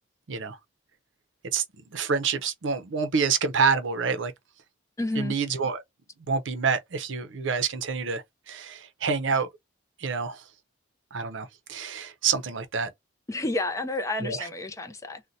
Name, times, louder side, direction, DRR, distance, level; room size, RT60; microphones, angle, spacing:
voice 1, 1.9-4.3 5.2-5.8 6.3-9.5 10.0-10.4 11.1-12.9 14.2-14.5, right 5 dB, 70° right, 0.6 m, -27 dB
voice 2, 5.0-5.3 13.3-15.2, left 2 dB, 15° left, 0.4 m, -30 dB
2.6 x 2.1 x 3.9 m
head